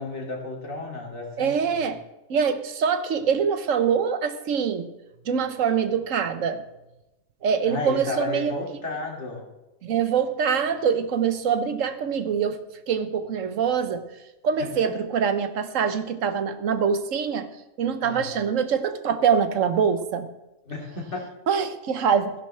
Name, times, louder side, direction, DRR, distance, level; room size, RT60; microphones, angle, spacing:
voice 1, 0.0-1.9 7.6-9.4 14.6-14.9 18.0-18.3 20.7-21.3, left 3 dB, 65° left, -1 dB, 2.8 m, -33 dB
voice 2, 1.4-2.0 2.3-4.9 5.3-6.6 7.4-8.5 9.8-12.6 12.9-14.0 14.4-17.5 17.8-20.3 21.5-22.3, right 7 dB, 90° right, 10 dB, 1.3 m, -24 dB
15.5 x 10.5 x 3.3 m, 0.97 s
omnidirectional pair, 1.3 m